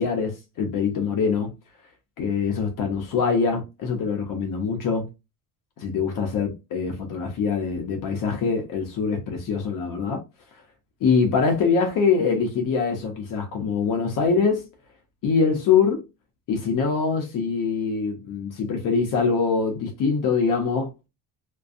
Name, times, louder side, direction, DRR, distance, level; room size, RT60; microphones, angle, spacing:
voice 1, 0.0-1.5 2.2-5.1 5.8-10.2 11.0-14.7 15.2-16.0 16.5-20.9, left 5 dB, 55° left, 0.7 m, -24 dB
2.6 x 2.2 x 2.4 m
cardioid pair, 125°, 39 cm